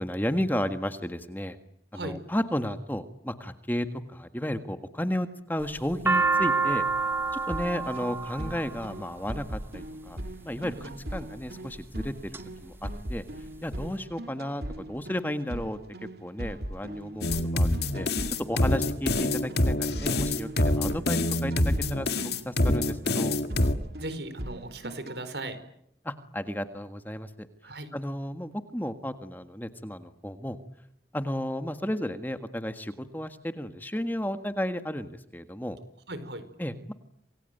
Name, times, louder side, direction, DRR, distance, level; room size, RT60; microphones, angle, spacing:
voice 1, 0.0-1.6 1.9-6.8 7.5-10.2 10.4-13.2 13.6-15.8 16.2-18.1 18.4-22.1 22.4-23.4 26.0-27.5 27.9-30.6 31.1-35.8 36.6-36.9, equal, 10° left, 8 dB, 1.6 m, -33 dB
sound 1, 5.6-9.8 10.7-11.1 11.7-12.4 12.7-12.8 13.0-13.8, right 4 dB, 15° right, 1.1 m, -28 dB
sound 2, 7.5-25.2, right 1 dB, 65° right, 2.5 m, -39 dB
voice 2, 10.5-10.9 24.0-25.6 27.6-27.9 36.1-36.4, right 1 dB, 80° right, 12 dB, 4.7 m, -37 dB
sound 3, 17.2-23.7, left 1 dB, 70° left, 1.9 m, -26 dB
28.0 x 22.5 x 9.2 m, 0.73 s
head